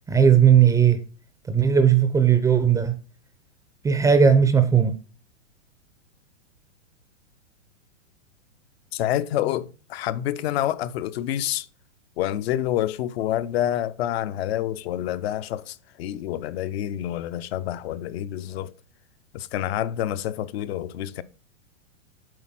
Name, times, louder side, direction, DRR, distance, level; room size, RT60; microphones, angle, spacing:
voice 1, 0.1-1.0 1.5-3.0 3.8-4.9, right 7 dB, 10° right, 0.5 m, -17 dB
voice 2, 8.9-11.7 12.2-18.7 19.3-21.2, left 12 dB, 55° left, 0.7 m, -28 dB
7.9 x 4.1 x 5.7 m
hypercardioid pair, 130°, 37 cm